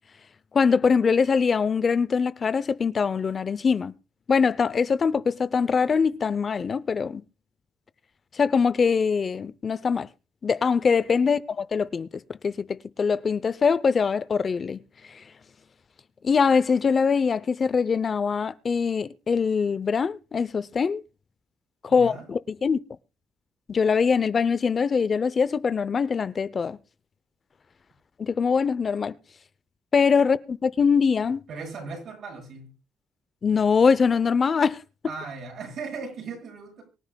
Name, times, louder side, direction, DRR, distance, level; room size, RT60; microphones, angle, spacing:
voice 1, 0.5-3.9 4.3-7.2 8.3-10.1 10.4-12.1 12.4-14.8 15.1-15.2 16.2-21.0 21.8-22.8 23.7-26.8 28.2-29.2 29.9-31.4 33.4-34.8, left 5 dB, 40° left, 0.5 m, -23 dB
voice 2, 21.9-22.3 31.5-32.7 35.1-36.8, right 4 dB, 65° right, 7.3 m, -37 dB
24.5 x 10.0 x 2.2 m
cardioid pair, 105°, 0 cm